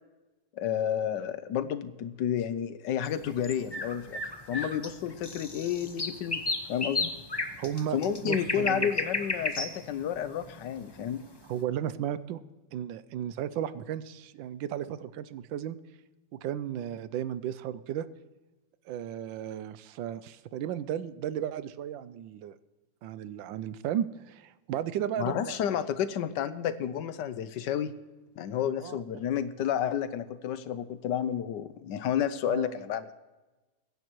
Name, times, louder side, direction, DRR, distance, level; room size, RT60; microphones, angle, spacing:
voice 1, 0.5-6.4 6.7-7.1 7.9-11.2 25.2-27.9 28.4-33.1, left 9 dB, 75° left, 13 dB, 1.3 m, -31 dB
sound 1, 3.0-11.3, left 2 dB, 25° left, 0.5 m, -34 dB
voice 2, 7.6-8.9 11.5-12.4 12.7-15.8 16.4-18.1 18.9-22.6 23.0-25.6 28.8-29.2 32.5-32.7, right 10 dB, 85° right, 15 dB, 1.3 m, -34 dB
22.0 x 10.5 x 3.1 m, 1.1 s
omnidirectional pair, 2.0 m